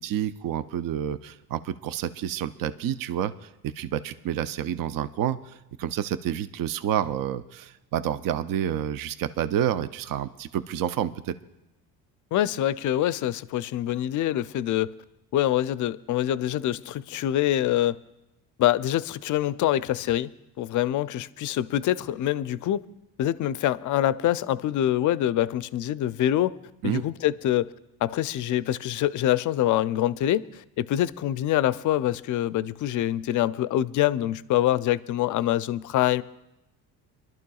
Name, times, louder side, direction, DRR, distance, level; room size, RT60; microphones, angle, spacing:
voice 1, 0.0-11.3 26.8-27.0, right 10 dB, 55° right, 0.6 m, -29 dB
voice 2, 12.3-14.9 15.3-18.0 18.6-20.3 20.6-22.8 23.2-26.6 26.8-27.7 28.0-36.2, left 13 dB, 50° left, 0.5 m, -25 dB
26.0 x 12.0 x 2.3 m
cardioid pair, 95°, 40 cm